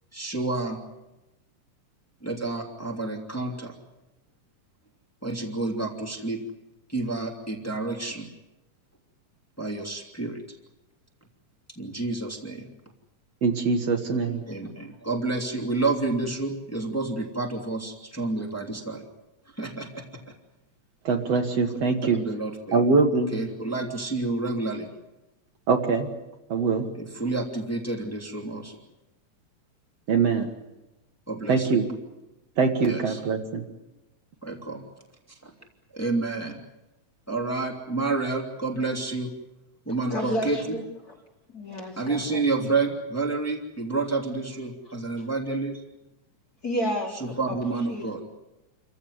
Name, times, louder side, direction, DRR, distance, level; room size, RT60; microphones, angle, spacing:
voice 1, 0.1-0.8 2.2-3.7 5.2-6.4 6.9-8.3 9.6-10.4 11.8-12.7 14.5-19.0 19.6-20.0 22.1-22.8 23.3-24.9 26.9-28.8 31.3-31.7 32.8-33.2 34.4-34.8 35.4-35.5 35.9-36.6 37.3-39.3 39.9-40.6 42.0-45.8 47.2-48.2, right 3 dB, 5° left, 0 dB, 2.5 m, -29 dB
voice 2, 13.4-14.4 21.0-22.2 22.7-23.3 25.7-26.1 26.5-26.9 30.1-30.5 31.5-31.8 32.6-33.6, right 4 dB, 60° right, 4 dB, 2.5 m, -23 dB
voice 3, 40.1-41.1 41.5-42.4 44.8-44.9 46.6-47.2 47.5-47.6 47.9-48.1, equal, 30° left, 0 dB, 3.2 m, -31 dB
28.0 x 15.0 x 9.6 m, 0.98 s
omnidirectional pair, 3.5 m